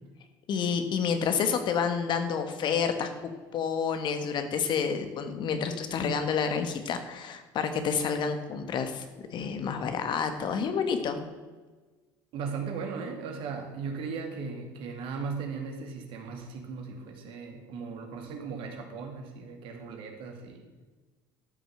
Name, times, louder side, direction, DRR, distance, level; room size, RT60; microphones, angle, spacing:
voice 1, 0.5-9.0 9.3-11.2, left 6 dB, 50° left, 8 dB, 1.6 m, -29 dB
voice 2, 12.3-20.7, right 5 dB, 65° right, 3 dB, 2.4 m, -37 dB
13.0 x 6.2 x 6.8 m, 1.3 s
supercardioid pair, 85°, 10 cm